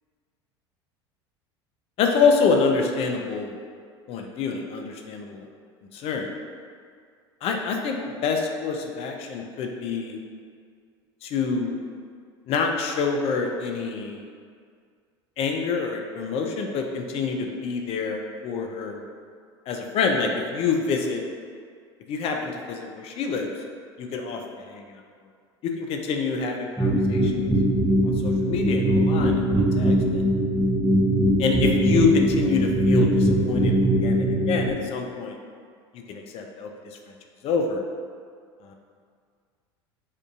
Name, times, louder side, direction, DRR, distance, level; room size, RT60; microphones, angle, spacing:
voice 1, 2.0-3.6 4.1-5.5 5.9-6.3 7.4-8.0 8.2-10.2 11.2-11.8 12.5-14.2 15.4-19.0 19.7-21.2 22.1-23.5 24.0-24.4 24.7-24.9 25.8-27.5 28.0-30.3 31.4-35.4 35.9-37.1 37.4-37.8 38.6-38.7, left 5 dB, 45° left, 3 dB, 0.3 m, -26 dB
sound 1, 26.8-34.7, right 1 dB, 5° right, 0.7 m, -21 dB
2.7 x 2.4 x 2.3 m, 2.1 s
hypercardioid pair, 80°, 14 cm